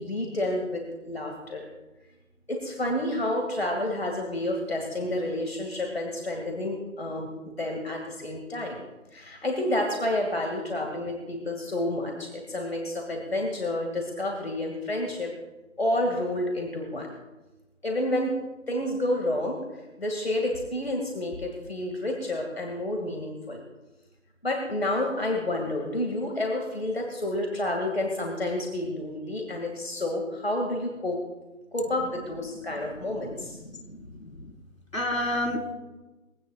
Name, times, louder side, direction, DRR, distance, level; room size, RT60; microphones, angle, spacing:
voice 1, 0.0-1.7 2.5-8.8 9.1-15.3 15.8-17.1 17.8-18.3 18.7-23.6 24.4-31.2 31.7-33.6, left 1 dB, 45° left, 2 dB, 2.3 m, -29 dB
voice 2, 33.7-34.5 34.9-35.7, left 1 dB, 75° left, 1 dB, 4.4 m, -30 dB
22.5 x 17.5 x 2.4 m, 1.1 s
figure-of-eight pair, 175°, 41 cm